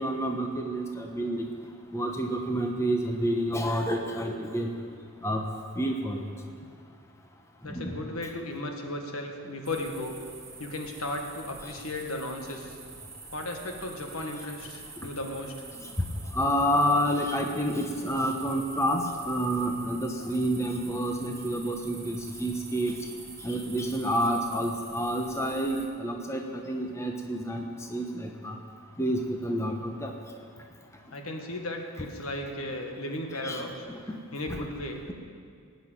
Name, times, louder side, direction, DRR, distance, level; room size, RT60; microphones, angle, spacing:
voice 1, 0.0-1.4 1.9-4.7 5.2-5.4 5.8-6.3 7.6-8.0 15.8-15.9 16.3-23.0 23.4-27.6 27.9-28.6 29.0-30.1 33.4-33.6 34.5-34.6, equal, 10° left, 2 dB, 0.9 m, -29 dB
voice 2, 7.6-10.2 10.6-12.8 13.3-15.5 31.1-33.7 34.3-35.1, left 1 dB, 75° left, 3 dB, 1.7 m, -35 dB
sound 1, 9.6-25.9, right 4 dB, 15° right, 1.4 m, -46 dB
18.5 x 6.3 x 9.1 m, 2.2 s
head